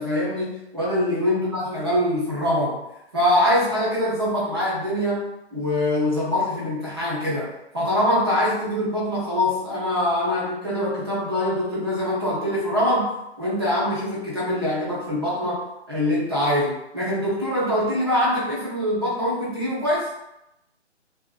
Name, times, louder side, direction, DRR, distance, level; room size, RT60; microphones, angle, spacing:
voice 1, 0.0-2.8 3.1-20.1, left 1 dB, 20° right, -8 dB, 0.6 m, -24 dB
2.5 x 2.5 x 2.3 m, 0.85 s
hypercardioid pair, 165°, 35 cm